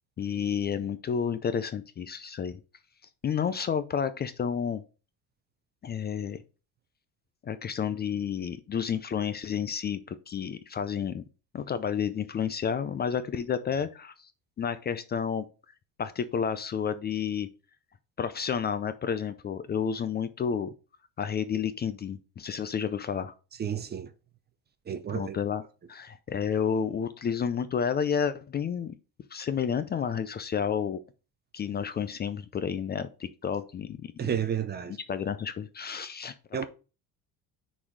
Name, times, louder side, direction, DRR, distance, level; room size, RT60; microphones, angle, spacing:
voice 1, 0.2-2.6 3.2-4.8 5.8-6.4 7.4-11.2 11.5-14.3 14.6-15.5 16.0-17.5 18.2-20.7 21.2-23.3 25.1-25.6 25.9-28.9 29.3-31.0 31.5-34.3 35.1-36.3, left 7 dB, 30° left, 0.4 m, -30 dB
voice 2, 23.6-24.1 24.9-25.4 34.2-35.0 36.5-36.7, right 8 dB, 30° right, 0.6 m, -31 dB
6.3 x 4.1 x 4.6 m
cardioid pair, 145°, 36 cm